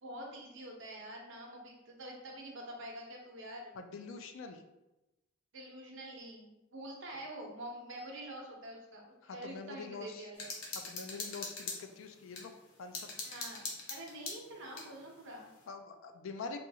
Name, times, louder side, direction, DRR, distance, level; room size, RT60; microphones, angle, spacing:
voice 1, 0.0-3.8 5.5-10.5 13.2-13.6 13.9-15.5, right 1 dB, 60° right, -1 dB, 0.8 m, -46 dB
voice 2, 3.8-4.6 7.1-7.2 9.2-10.3 10.9-12.5 12.8-13.2 15.7-16.6, left 4 dB, 65° left, 6 dB, 0.4 m, -45 dB
sound 1, 10.4-12.5 12.9-14.9, left 3 dB, 85° left, 0.8 m, -42 dB
4.0 x 2.3 x 2.7 m, 0.98 s
head